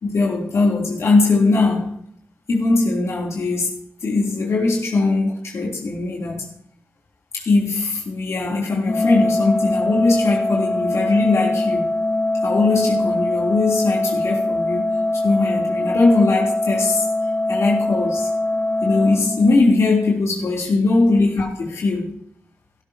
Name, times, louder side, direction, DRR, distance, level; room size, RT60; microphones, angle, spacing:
voice 1, 0.0-2.0 2.5-3.8 4.0-6.5 7.3-12.0 12.4-17.0 17.5-18.3 18.8-22.2, left 3 dB, 70° left, 3.2 m, -20 dB
Organ, 8.8-19.9, left 2 dB, 45° left, 1.4 m, -22 dB
16.5 x 13.0 x 2.8 m
wide cardioid pair, 95°, 5 cm